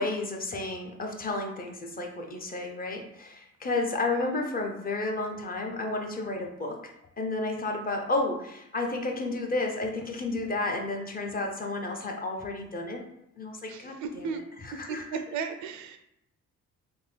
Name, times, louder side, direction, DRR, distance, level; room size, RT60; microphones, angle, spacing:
voice 1, 0.0-6.9 7.2-13.0 13.4-15.2, left 2 dB, 30° left, 2 dB, 0.6 m, -32 dB
voice 2, 13.7-14.4 14.9-16.0, right 5 dB, 70° right, 7 dB, 0.4 m, -35 dB
3.5 x 2.1 x 3.3 m, 0.80 s
cardioid pair, 90°, 30 cm